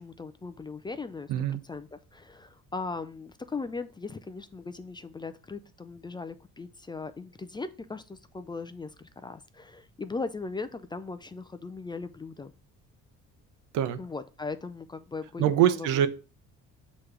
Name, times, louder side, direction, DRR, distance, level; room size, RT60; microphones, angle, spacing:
voice 1, 0.0-12.5 14.0-15.9, left 4 dB, 15° left, 11 dB, 0.3 m, -38 dB
voice 2, 1.3-1.6 13.7-14.0 15.4-16.1, right 10 dB, 85° right, 12 dB, 0.8 m, -23 dB
6.7 x 3.1 x 4.7 m, 0.34 s
cardioid pair, 130°, 30 cm